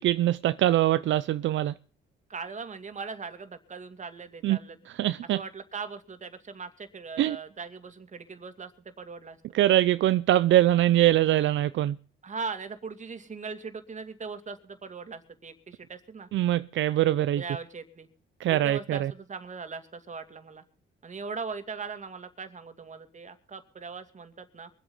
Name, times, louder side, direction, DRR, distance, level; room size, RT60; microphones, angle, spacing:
voice 1, 0.0-1.7 4.4-4.6 4.9-5.4 7.2-7.4 9.5-12.0 16.3-17.4 18.4-19.1, right 13 dB, 75° right, 0.6 m, -23 dB
voice 2, 2.3-4.8 5.3-9.7 12.2-16.3 17.3-18.1 18.5-20.6 21.0-24.7, right 5 dB, 40° right, 2.6 m, -40 dB
23.5 x 8.4 x 5.6 m
cardioid pair, 90°, 20 cm